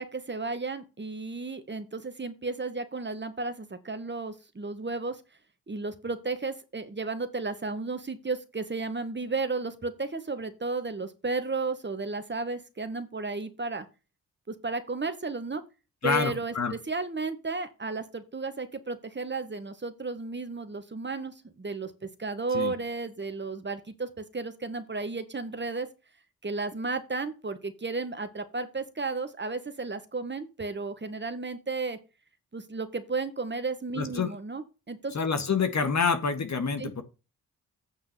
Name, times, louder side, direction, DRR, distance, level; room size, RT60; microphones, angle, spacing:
voice 1, 0.0-5.2 5.7-13.9 14.5-15.6 16.0-25.9 26.4-32.0 32.5-35.3 36.8-36.9, right 3 dB, 30° right, 9 dB, 1.8 m, -33 dB
voice 2, 16.0-16.7 22.5-22.7 34.0-34.3 35.1-37.0, left 5 dB, 50° left, 9 dB, 1.8 m, -27 dB
8.7 x 5.8 x 5.9 m, 0.30 s
hypercardioid pair, 40°, 37 cm